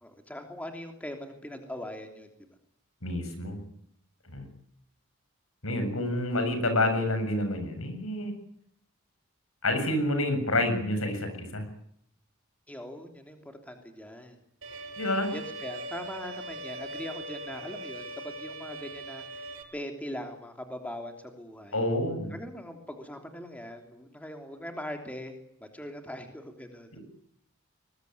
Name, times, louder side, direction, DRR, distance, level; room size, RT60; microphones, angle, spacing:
voice 1, 0.0-2.3 12.7-14.4 15.3-21.9 22.3-27.0, left 1 dB, 5° left, 5 dB, 3.1 m, -41 dB
voice 2, 3.0-3.6 4.3-4.5 5.6-8.3 9.6-11.6 15.0-15.3 21.7-22.3 26.9-27.0, left 1 dB, 85° left, 8 dB, 7.4 m, -28 dB
Bowed string instrument, 14.6-19.6, right 1 dB, 80° right, 6.2 m, -40 dB
22.5 x 21.5 x 9.5 m, 0.70 s
head